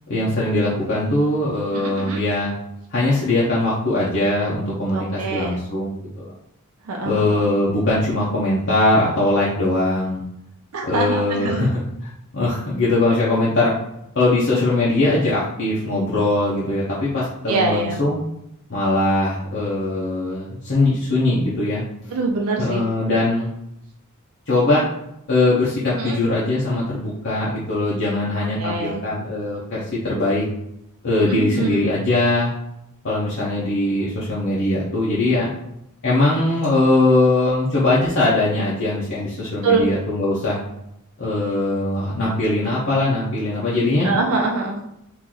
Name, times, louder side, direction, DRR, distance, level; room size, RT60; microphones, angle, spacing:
voice 1, 0.1-2.5 2.9-6.3 7.0-10.2 10.9-11.8 12.3-13.7 14.1-18.2 18.7-21.8 22.6-23.5 24.5-24.8 25.3-30.4 31.0-32.5 33.0-35.5 36.0-40.6 41.2-44.1, left 2 dB, 55° left, -8 dB, 0.8 m, -21 dB
voice 2, 1.7-2.2 4.9-5.6 6.8-7.6 10.7-11.7 17.5-18.0 22.1-22.8 26.0-26.2 28.6-29.0 31.2-31.9 39.6-39.9 44.0-44.8, right 3 dB, 70° right, 0 dB, 0.5 m, -24 dB
3.0 x 2.6 x 3.8 m, 0.80 s
head